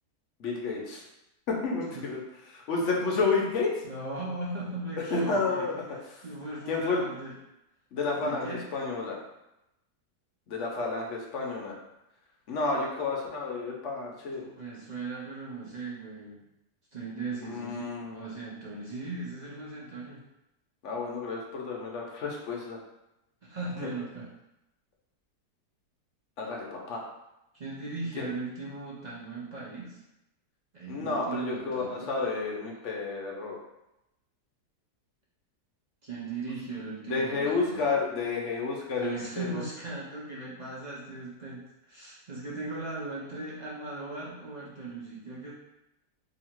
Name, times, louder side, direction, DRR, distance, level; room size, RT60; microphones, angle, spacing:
voice 1, 0.4-1.0 1.5-2.2 2.5-3.8 5.1-5.8 6.7-7.0 7.9-9.2 10.5-11.7 12.5-14.5 17.4-18.3 20.8-22.8 23.8-23.9 26.4-27.0 28.2-28.3 30.9-33.6 37.1-39.6, left 4 dB, 60° left, -1 dB, 0.8 m, -31 dB
voice 2, 3.8-7.3 8.2-8.7 14.4-16.4 16.9-20.2 23.4-24.3 27.5-30.0 30.7-32.1 36.0-37.8 39.0-45.5, right 3 dB, 50° right, -7 dB, 0.5 m, -38 dB
2.9 x 2.7 x 4.4 m, 0.90 s
omnidirectional pair, 1.8 m